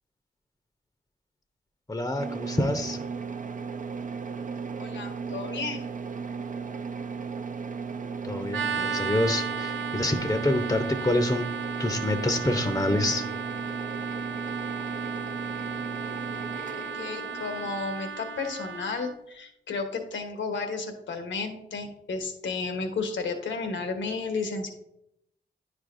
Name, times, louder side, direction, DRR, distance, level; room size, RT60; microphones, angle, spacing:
voice 1, 1.9-3.0 8.2-11.4 11.8-13.2, left 1 dB, 15° left, 6 dB, 0.7 m, -27 dB
sound 1, 2.2-17.8, right 5 dB, 45° right, 0.6 m, -35 dB
voice 2, 4.8-5.8 16.7-24.7, left 4 dB, 80° left, 5 dB, 1.1 m, -33 dB
sound 2, 8.5-19.1, right 5 dB, 90° right, 0.6 m, -35 dB
9.7 x 4.9 x 2.6 m, 0.79 s
supercardioid pair, 40°, 19 cm